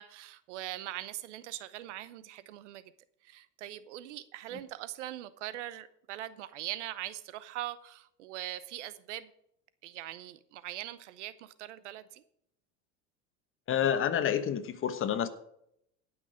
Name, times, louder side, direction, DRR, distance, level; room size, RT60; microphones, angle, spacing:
voice 1, 0.0-2.9 3.2-9.3 9.8-12.2, right 14 dB, 90° right, 15 dB, 0.9 m, -41 dB
voice 2, 13.7-15.3, left 9 dB, 35° left, 10 dB, 1.2 m, -28 dB
17.0 x 6.2 x 5.1 m, 0.74 s
supercardioid pair, 105°, 35 cm